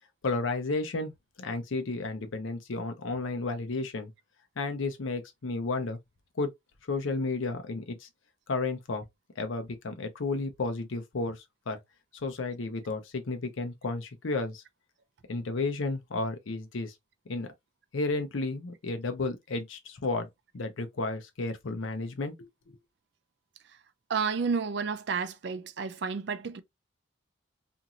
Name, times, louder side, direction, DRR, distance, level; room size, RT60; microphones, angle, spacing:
voice 1, 0.2-1.1 1.4-4.1 4.6-6.0 6.4-6.5 6.9-8.1 8.5-9.0 9.4-11.8 12.2-14.6 15.3-16.9 17.3-17.5 17.9-20.3 20.5-22.5, left 3 dB, 85° left, 0.6 m, -32 dB
voice 2, 24.1-26.6, right 5 dB, 60° right, 0.4 m, -31 dB
2.9 x 2.6 x 2.5 m
head